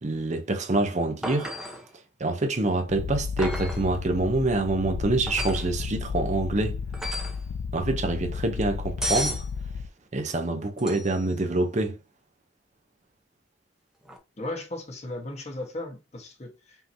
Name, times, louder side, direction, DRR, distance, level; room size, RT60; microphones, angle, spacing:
voice 1, 0.0-1.5 2.2-6.8 7.7-9.4 10.1-11.9, right 2 dB, 40° right, 0.8 m, -26 dB
sound 1, 1.2-1.9 3.4-3.9 5.3-5.7 6.9-7.4 9.0-9.5 10.8-11.3 14.1-14.2, equal, 5° right, 0.9 m, -33 dB
Purr, 2.9-9.9, left 5 dB, 85° left, 0.3 m, -33 dB
voice 2, 14.4-16.8, left 2 dB, 40° left, 1.2 m, -36 dB
5.6 x 2.8 x 2.7 m
head